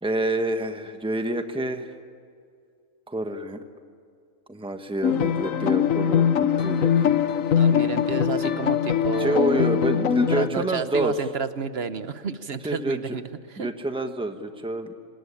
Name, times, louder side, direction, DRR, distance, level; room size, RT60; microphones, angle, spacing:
voice 1, 0.0-1.9 3.1-3.6 4.5-7.0 9.2-11.1 12.6-13.2 13.6-14.9, right 1 dB, 5° right, 6 dB, 1.3 m, -28 dB
sound 1, 5.0-10.5, left 8 dB, 80° left, 1.4 m, -22 dB
voice 2, 7.5-9.7 10.2-13.7, right 5 dB, 50° right, 11 dB, 1.2 m, -31 dB
27.5 x 19.5 x 9.9 m, 2.3 s
omnidirectional pair, 1.4 m